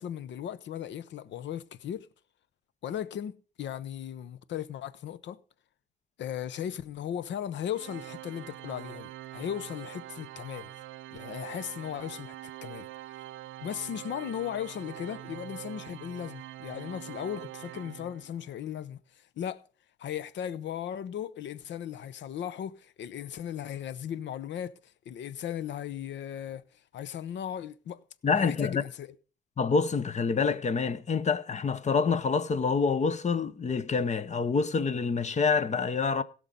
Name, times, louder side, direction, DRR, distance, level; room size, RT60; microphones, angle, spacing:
voice 1, 0.0-2.1 2.8-3.3 3.6-5.4 6.2-10.8 11.1-12.9 13.6-19.6 20.0-26.6 26.9-28.0 28.3-29.1, left 9 dB, 65° left, 0.8 m, -37 dB
Organ, 7.7-18.5, right 14 dB, 80° right, 0.7 m, -44 dB
voice 2, 28.2-28.8 29.6-36.2, left 5 dB, 35° left, 0.8 m, -27 dB
16.5 x 6.3 x 5.2 m
cardioid pair, 90°, 20 cm